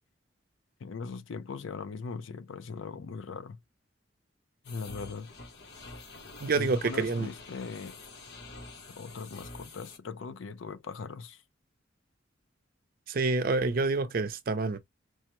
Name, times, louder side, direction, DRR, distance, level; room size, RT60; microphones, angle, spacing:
voice 1, 0.8-3.6 4.7-5.3 6.5-8.0 8.9-11.4, left 5 dB, 85° left, 0.5 m, -40 dB
sound 1, 4.6-10.0, left 3 dB, 60° left, 1.0 m, -47 dB
voice 2, 6.4-7.3 13.1-14.8, right 3 dB, 50° right, 0.6 m, -27 dB
4.7 x 2.1 x 2.9 m
head